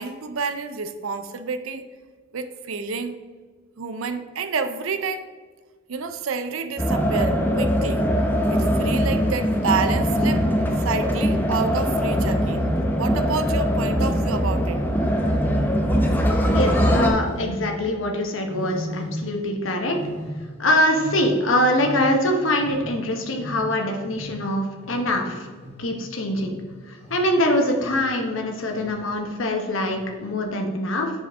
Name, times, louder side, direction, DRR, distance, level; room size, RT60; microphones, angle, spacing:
voice 1, 0.0-1.8 2.3-3.2 3.8-5.2 5.9-8.1 8.5-10.5 10.8-12.7 13.0-14.8, right 5 dB, 80° right, 9 dB, 0.5 m, -29 dB
sound 1, 6.8-17.1, equal, 10° left, 0.8 m, -21 dB
Wild animals, 11.6-13.2 14.3-16.2 16.6-17.8 18.4-19.5 19.8-22.3 22.5-27.4 27.8-28.3 28.7-29.1 29.8-30.3, equal, 30° left, 1.5 m, -37 dB
voice 2, 16.5-20.0 20.6-25.5 25.8-26.6 27.1-31.1, left 1 dB, 70° left, 2 dB, 1.1 m, -23 dB
7.1 x 6.4 x 3.6 m, 1.5 s
head